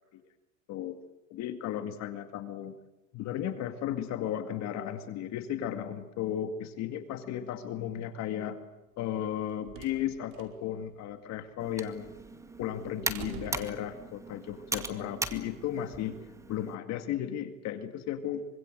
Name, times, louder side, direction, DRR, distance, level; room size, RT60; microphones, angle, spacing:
voice 1, 1.3-2.8 3.1-8.6 9.0-12.1 12.6-18.5, left 10 dB, 40° left, 8 dB, 2.2 m, -35 dB
sound 1, 9.1-14.4, right 8 dB, 50° right, 5.1 m, -49 dB
Computer keyboard, 11.6-16.8, right 2 dB, 5° right, 2.0 m, -39 dB
26.0 x 25.0 x 7.9 m, 1.0 s
supercardioid pair, 140°, 41 cm